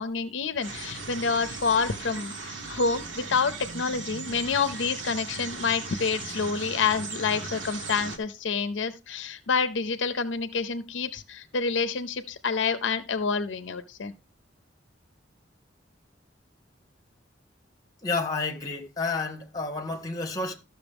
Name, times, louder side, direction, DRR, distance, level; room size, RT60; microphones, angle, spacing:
voice 1, 0.0-14.1, left 5 dB, 75° left, 0.6 m, -28 dB
sound 1, 0.6-8.2, right 3 dB, 85° right, 1.5 m, -38 dB
voice 2, 18.0-20.6, left 3 dB, 20° left, 1.6 m, -30 dB
13.0 x 6.5 x 3.5 m
head